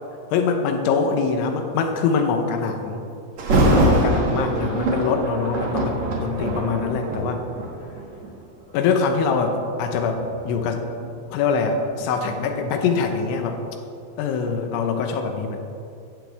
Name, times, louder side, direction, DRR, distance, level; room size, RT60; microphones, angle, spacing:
voice 1, 0.3-3.0 3.5-7.4 8.7-10.8 11.3-13.6 14.2-15.6, left 5 dB, 80° left, 5 dB, 3.4 m, -23 dB
Thunder, 3.4-8.4 9.0-9.2 9.9-12.7 13.0-13.1, right 1 dB, 50° right, 2.6 m, -23 dB
15.5 x 15.5 x 3.5 m, 2.7 s
omnidirectional pair, 5.4 m